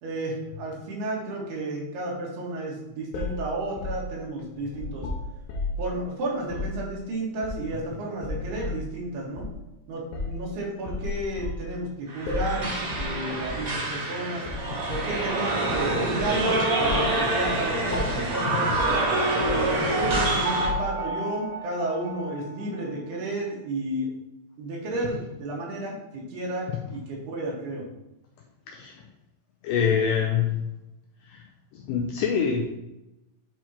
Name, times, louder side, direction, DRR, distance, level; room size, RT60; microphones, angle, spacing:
voice 1, 0.0-5.1 5.8-9.5 9.9-14.4 14.9-18.7 19.4-24.1 24.6-27.8, right 2 dB, 80° right, -3 dB, 3.7 m, -32 dB
sound 1, 3.1-5.9 6.4-6.8 7.4-7.9 8.2-8.8 9.4-9.5 10.1-10.4 10.9-11.7 12.3-12.6 12.9-13.2 13.4-13.7 14.5-15.1 15.7-16.4 16.8-17.1 17.4-17.6 17.9-18.3 18.7-19.0 19.4-21.1, left 3 dB, 75° left, 2.6 m, -33 dB
sound 2, 12.1-20.7, right 2 dB, 50° right, 2.0 m, -27 dB
Piano, 19.1-22.9 23.1-23.2, right 1 dB, 65° right, 2.6 m, -30 dB
voice 2, 29.6-30.6 31.3-31.4 31.7-32.6, left 7 dB, 90° left, 1 dB, 2.0 m, -25 dB
9.2 x 4.6 x 3.0 m, 0.94 s
omnidirectional pair, 4.6 m